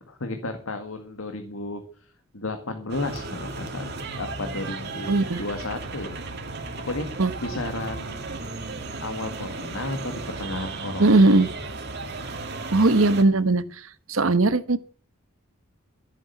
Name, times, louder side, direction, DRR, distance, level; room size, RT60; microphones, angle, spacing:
voice 1, 0.0-1.8 2.3-6.2 6.8-7.0 7.4-8.3 9.0-11.3 12.7-12.8, left 2 dB, 80° left, 6 dB, 1.9 m, -33 dB
sound 1, 2.9-13.2, right 3 dB, 50° right, 2.2 m, -35 dB
voice 2, 5.1-5.4 7.2-7.3 11.0-11.5 12.7-13.6 14.1-14.8, right 2 dB, 80° right, 13 dB, 1.2 m, -18 dB
14.5 x 8.9 x 6.8 m, 0.42 s
head